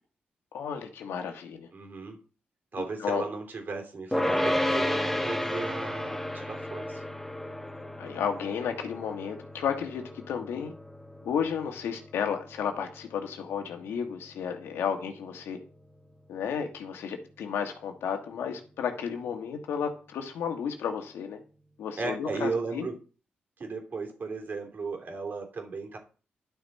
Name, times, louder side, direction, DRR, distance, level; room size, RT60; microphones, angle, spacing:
voice 1, 0.5-1.7 2.8-3.2 8.0-10.7 11.2-15.6 16.3-21.4 21.8-22.9, left 7 dB, 85° left, 5 dB, 1.6 m, -33 dB
voice 2, 1.7-2.2 2.7-7.0 22.0-23.0 23.6-26.0, right 4 dB, 55° right, 3 dB, 3.0 m, -35 dB
sound 1, 4.1-15.4, left 1 dB, 5° left, 1.1 m, -33 dB
11.0 x 6.0 x 4.2 m, 0.38 s
cardioid pair, 60°, 4 cm